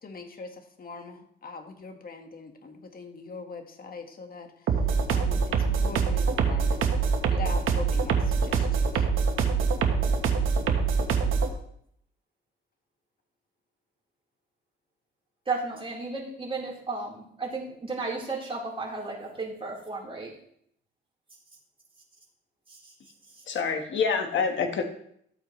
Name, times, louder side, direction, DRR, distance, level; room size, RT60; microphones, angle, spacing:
voice 1, 0.0-4.8 5.1-6.8 7.3-9.1, left 3 dB, 45° left, 5 dB, 1.7 m, -42 dB
sound 1, 4.7-11.5, right 5 dB, 80° right, 1.3 m, -24 dB
voice 2, 15.5-20.3 22.7-22.9, right 3 dB, 25° right, -4 dB, 4.3 m, -34 dB
voice 3, 23.5-24.8, left 5 dB, 70° left, 4 dB, 1.6 m, -26 dB
13.5 x 8.5 x 3.3 m, 0.70 s
cardioid pair, 80°, 20 cm